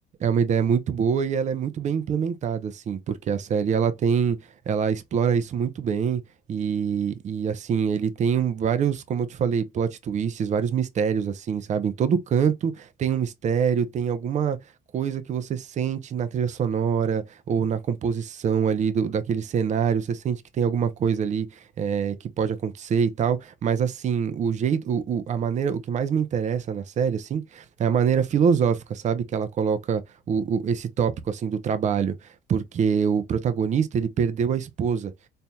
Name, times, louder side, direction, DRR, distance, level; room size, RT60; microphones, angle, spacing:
voice 1, 0.2-4.4 4.7-6.2 6.5-14.6 14.9-30.0 30.3-35.1, right 7 dB, 45° right, 0.7 m, -25 dB
4.2 x 3.3 x 2.3 m
cardioid pair, 110°, 17 cm